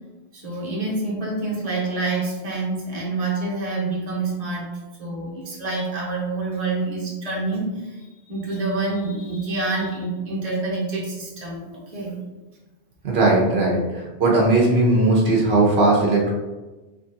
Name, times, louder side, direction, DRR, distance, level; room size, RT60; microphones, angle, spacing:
voice 1, 0.3-4.7 5.0-8.0 8.3-12.1, right 3 dB, 35° right, -4 dB, 0.9 m, -27 dB
voice 2, 13.0-16.3, right 2 dB, 70° right, -3 dB, 1.0 m, -18 dB
3.7 x 3.2 x 2.6 m, 1.1 s
omnidirectional pair, 1.1 m